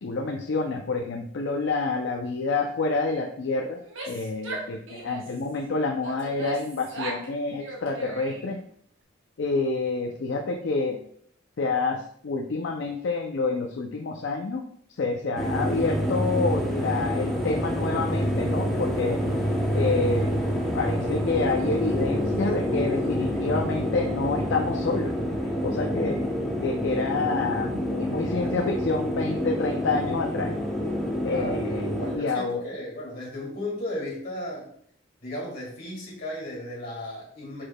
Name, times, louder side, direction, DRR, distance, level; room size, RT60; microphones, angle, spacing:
voice 1, 0.0-8.6 9.4-11.0 11.6-14.6 15.0-19.2 19.7-20.3 20.7-25.1 25.6-26.2 26.6-30.5 31.2-32.6, left 3 dB, 65° left, 1 dB, 0.4 m, -28 dB
Female speech woman speaking / Yell, 3.8-5.4 6.0-7.3 7.6-8.6, right 2 dB, 75° right, 0.9 m, -38 dB
sound 1, 15.4-32.2, equal, ahead, 0.7 m, -27 dB
voice 2, 31.3-34.7 35.2-37.6, left 1 dB, 45° left, -4 dB, 1.9 m, -35 dB
4.8 x 4.5 x 2.2 m, 0.64 s
head